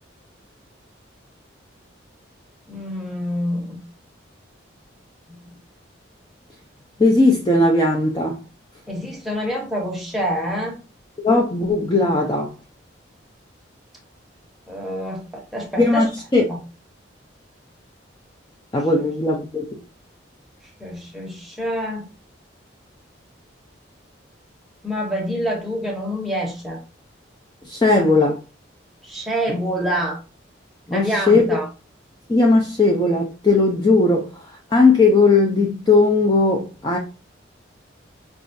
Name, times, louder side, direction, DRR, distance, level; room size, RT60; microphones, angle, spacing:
voice 1, 2.7-3.8 5.3-5.6 8.9-10.8 14.7-16.1 16.5-16.6 20.8-22.1 24.8-26.8 29.0-30.2 30.9-31.7, equal, ahead, 0.8 m, -26 dB
voice 2, 7.0-8.4 11.2-12.5 15.8-16.1 16.3-16.4 18.7-19.8 27.7-28.4 29.5-29.6 30.9-31.6 32.3-37.0, left 3 dB, 20° left, 0.4 m, -17 dB
5.0 x 2.4 x 2.5 m
head